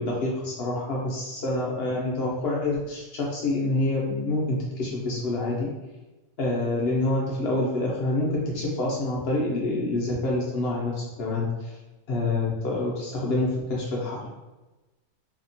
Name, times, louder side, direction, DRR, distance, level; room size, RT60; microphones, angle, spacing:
voice 1, 0.0-5.7 6.4-11.8 12.1-14.3, left 2 dB, 70° left, -3 dB, 0.5 m, -27 dB
2.7 x 2.1 x 2.6 m, 1.1 s
omnidirectional pair, 1.6 m